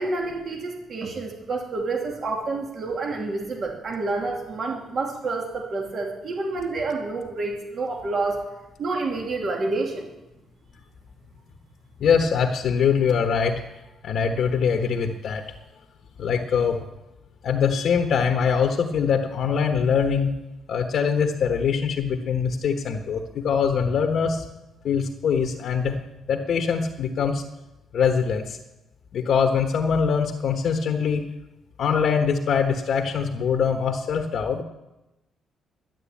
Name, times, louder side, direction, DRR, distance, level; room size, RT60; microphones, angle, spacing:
voice 1, 0.0-8.4 8.8-10.1, right 3 dB, 50° right, 1 dB, 2.6 m, -28 dB
voice 2, 12.0-13.6 14.0-15.4 16.2-16.8 17.4-20.3 20.7-24.4 24.8-25.9 26.3-27.4 27.9-28.6 29.1-31.2 31.8-34.6, left 6 dB, 65° left, 5 dB, 1.2 m, -23 dB
12.0 x 9.6 x 8.5 m, 0.96 s
cardioid pair, 90°, 0 cm